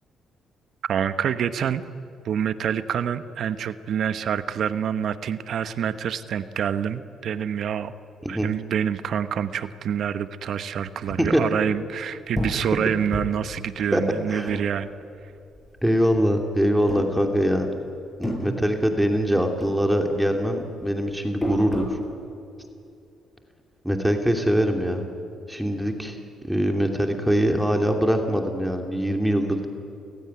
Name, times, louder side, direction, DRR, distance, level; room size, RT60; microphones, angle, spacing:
voice 1, 0.9-1.8 2.2-7.9 8.3-14.9, right 8 dB, 65° right, 12 dB, 1.1 m, -27 dB
sound 1, 12.3-15.2 15.5-16.4 16.8-17.7 18.0-19.3 19.6-22.0, equal, 15° left, 7.0 m, -32 dB
voice 2, 15.8-17.7 18.2-22.0 23.8-25.0 25.5-26.2 26.4-29.7, equal, 5° right, 4 dB, 2.7 m, -23 dB
29.5 x 16.5 x 9.7 m, 2.6 s
cardioid pair, 90°, 0 cm